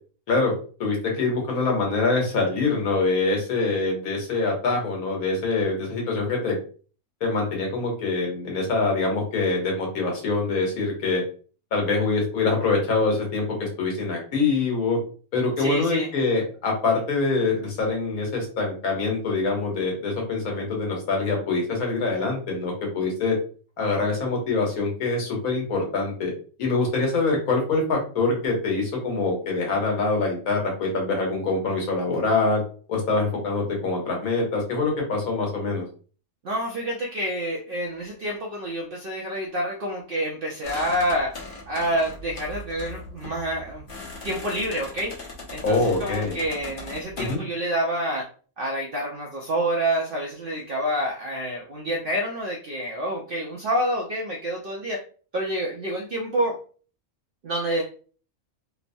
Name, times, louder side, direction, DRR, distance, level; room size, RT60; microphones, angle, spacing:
voice 1, 0.8-6.6 7.2-11.2 11.7-15.0 15.3-23.4 23.8-26.3 26.6-32.6 32.9-35.8 45.6-46.4 47.2-47.4, left 3 dB, 85° left, 0 dB, 1.4 m, -24 dB
voice 2, 15.6-16.1 36.4-43.8 44.2-48.3 48.6-55.0 55.3-56.6 57.4-57.8, right 1 dB, 70° right, -2 dB, 0.5 m, -28 dB
sound 1, 40.6-47.4, left 2 dB, 45° left, 0.9 m, -39 dB
3.0 x 2.0 x 2.5 m, 0.40 s
omnidirectional pair, 1.5 m